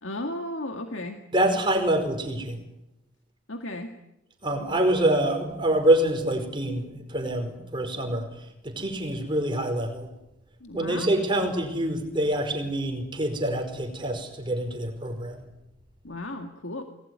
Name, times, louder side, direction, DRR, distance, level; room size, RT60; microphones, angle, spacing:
voice 1, 0.0-1.2 3.5-4.0 10.6-11.1 16.0-16.8, left 1 dB, 70° left, 5 dB, 2.1 m, -34 dB
voice 2, 1.3-2.6 4.4-8.2 8.6-10.1 10.7-15.4, right 1 dB, 25° right, 5 dB, 5.0 m, -26 dB
27.5 x 20.0 x 9.7 m, 0.86 s
head